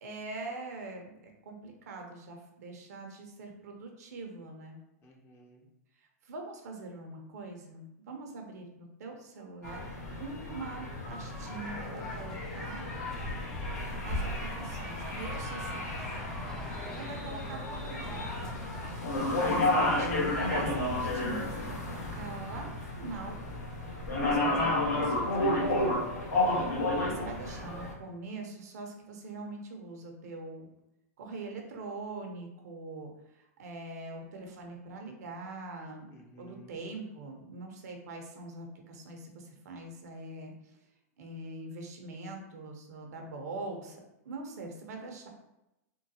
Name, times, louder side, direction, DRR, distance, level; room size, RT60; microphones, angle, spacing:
voice 1, 0.0-4.8 6.2-9.8 10.2-12.9 14.0-15.9 17.0-18.3 19.4-23.4 24.2-25.9 27.0-30.7 31.2-36.1 36.4-40.7 41.2-45.3, right 3 dB, 70° right, 2 dB, 0.7 m, -43 dB
voice 2, 5.0-5.6 16.6-17.2 19.3-19.6 36.1-36.7, left 2 dB, 30° left, 0 dB, 0.7 m, -49 dB
sound 1, 9.6-27.9, left 1 dB, 85° left, 1.0 m, -32 dB
sound 2, 11.1-20.6, left 1 dB, 5° left, 0.3 m, -47 dB
3.7 x 2.2 x 2.8 m, 0.91 s
hypercardioid pair, 130°, 9 cm